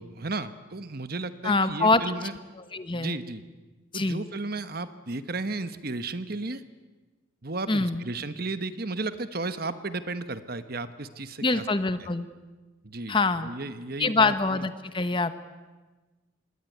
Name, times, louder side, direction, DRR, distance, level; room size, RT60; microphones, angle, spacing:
voice 1, 0.0-2.3 2.9-3.4 3.9-6.6 7.4-11.7 12.0-12.1 12.8-13.2 13.4-14.7, right 3 dB, 45° right, 12 dB, 1.1 m, -34 dB
voice 2, 1.4-2.0 2.7-3.2 3.9-4.2 7.7-8.0 11.4-12.3 13.1-13.5 14.0-15.3, left 3 dB, 25° left, 11 dB, 1.0 m, -24 dB
26.5 x 21.0 x 9.3 m, 1.2 s
head